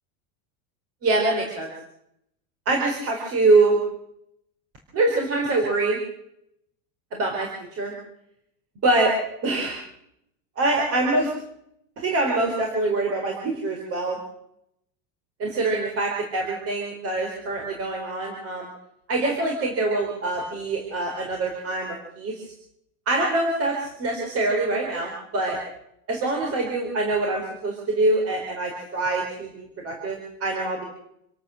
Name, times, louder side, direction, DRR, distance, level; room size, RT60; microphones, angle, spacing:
voice 1, 1.0-1.7 2.7-3.8 4.9-6.0 7.1-7.9 8.8-9.1 9.4-9.8 10.6-11.3 12.0-14.2 15.4-18.7 19.1-22.5 23.1-25.6 26.1-30.8, right 2 dB, 30° right, 2 dB, 4.4 m, -24 dB
27.5 x 13.0 x 7.8 m, 0.75 s
cardioid pair, 170°, 46 cm